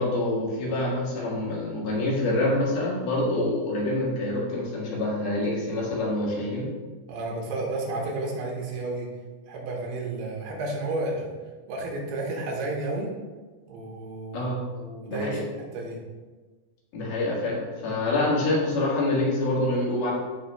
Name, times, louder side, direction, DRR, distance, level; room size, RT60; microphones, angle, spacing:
voice 1, 0.0-6.7 14.3-14.6 15.1-15.4 16.9-20.1, left 2 dB, 75° left, -4 dB, 3.7 m, -26 dB
voice 2, 7.1-9.1 9.5-11.3 11.7-13.1 13.7-16.0, right 2 dB, 80° right, -2 dB, 3.4 m, -32 dB
14.0 x 5.7 x 2.3 m, 1.3 s
omnidirectional pair, 4.5 m